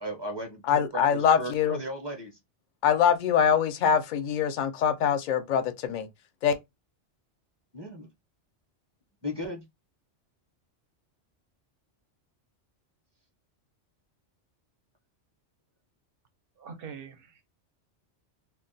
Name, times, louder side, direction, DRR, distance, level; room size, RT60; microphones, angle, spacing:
voice 1, 0.0-2.4 7.7-8.1 9.2-9.6, equal, 25° right, 0.6 m, -36 dB
voice 2, 0.6-1.8 2.8-6.1 6.4-6.5, left 8 dB, 55° left, 0.5 m, -24 dB
voice 3, 16.6-17.4, right 6 dB, 60° right, 0.8 m, -43 dB
2.3 x 2.2 x 3.8 m
omnidirectional pair, 1.2 m